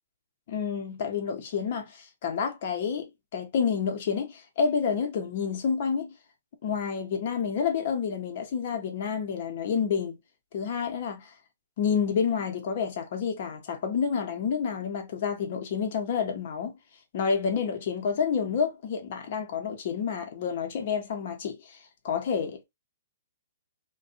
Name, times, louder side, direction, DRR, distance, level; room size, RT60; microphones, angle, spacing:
voice 1, 0.5-6.2 6.6-10.2 10.5-11.3 11.8-16.8 17.1-21.8 22.0-22.6, left 6 dB, 55° left, 0.9 m, -29 dB
2.6 x 2.3 x 2.5 m
hypercardioid pair, 140°, 0 cm